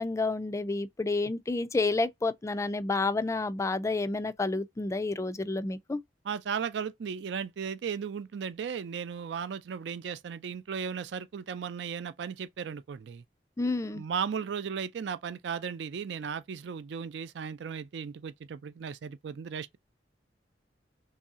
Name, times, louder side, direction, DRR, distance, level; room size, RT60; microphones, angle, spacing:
voice 1, 0.0-6.0 13.6-14.0, left 3 dB, 15° left, 0.3 m, -30 dB
voice 2, 6.2-13.2 13.8-19.8, right 7 dB, 70° right, 0.4 m, -36 dB
3.1 x 2.7 x 3.5 m
head